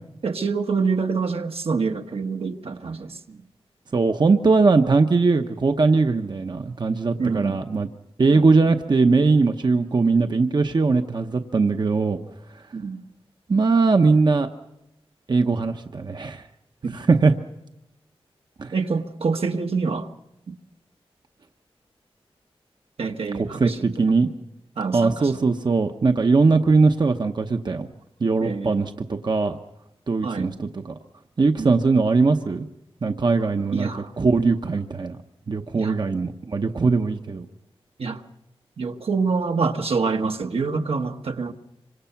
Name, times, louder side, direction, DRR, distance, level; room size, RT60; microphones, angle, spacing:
voice 1, 0.2-3.4 7.2-7.6 8.3-8.5 12.7-13.0 16.8-17.0 18.7-20.1 20.5-20.6 23.0-24.0 24.8-25.3 28.4-28.8 30.2-30.5 31.6-31.7 33.7-34.1 35.7-36.0 38.0-38.2 38.8-41.5, right 4 dB, 70° right, 1.3 m, -26 dB
voice 2, 3.9-7.9 8.2-12.2 13.5-14.5 15.3-16.4 16.9-17.3 18.6-18.7 23.4-24.3 24.9-27.9 28.2-29.6 30.1-30.9 31.4-32.7 33.0-33.9 34.2-35.2 35.5-37.4, right 4 dB, 45° right, 0.9 m, -20 dB
26.0 x 25.5 x 5.9 m
wide cardioid pair, 95°, 10 cm